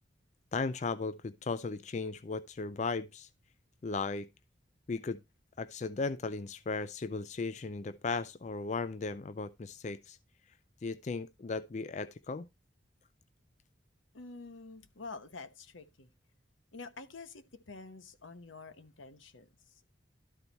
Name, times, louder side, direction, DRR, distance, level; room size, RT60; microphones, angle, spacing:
voice 1, 0.5-3.3 3.8-4.3 4.9-5.2 5.6-10.2 10.8-12.5, left 4 dB, 35° left, 0.4 m, -36 dB
voice 2, 14.1-16.1 16.7-19.8, left 3 dB, 90° left, 1.1 m, -48 dB
12.5 x 4.5 x 4.1 m
head